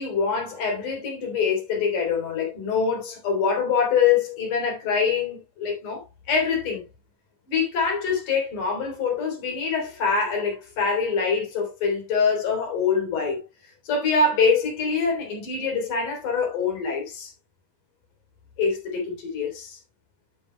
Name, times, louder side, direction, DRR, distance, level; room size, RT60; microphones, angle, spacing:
voice 1, 0.0-6.0 6.3-6.8 7.5-13.4 13.8-17.3 18.6-19.8, left 5 dB, 70° left, 4.9 m, -24 dB
11.5 x 9.0 x 2.2 m
omnidirectional pair, 3.8 m